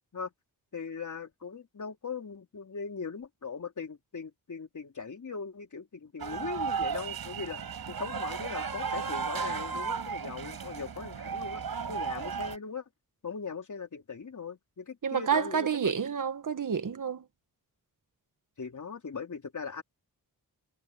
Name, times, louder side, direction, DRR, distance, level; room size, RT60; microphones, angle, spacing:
voice 1, 0.7-11.6 11.9-12.8 13.2-15.9 18.6-19.8, left 5 dB, 50° left, 3.6 m, -39 dB
sound 1, 6.2-12.6, right 6 dB, 70° right, 6.0 m, -34 dB
voice 2, 15.0-17.2, right 7 dB, 55° right, 1.3 m, -29 dB
wide cardioid pair, 90°, 38 cm